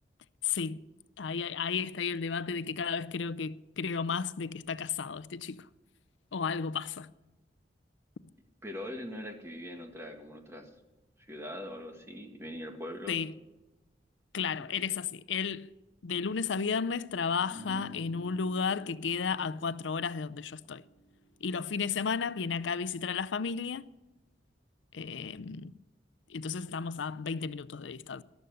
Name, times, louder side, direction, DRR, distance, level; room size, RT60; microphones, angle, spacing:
voice 1, 0.4-0.8 1.2-5.7 6.3-7.1 13.1-13.3 14.3-15.7 16.0-20.8 21.4-23.9 24.9-25.8 26.3-28.2, left 5 dB, 85° left, 0.5 m, -33 dB
voice 2, 8.6-10.7 11.2-13.2 14.6-14.9, left 1 dB, 15° right, 1.7 m, -42 dB
sound 1, 17.4-23.9, equal, 35° left, 2.6 m, -53 dB
12.5 x 12.5 x 7.8 m
head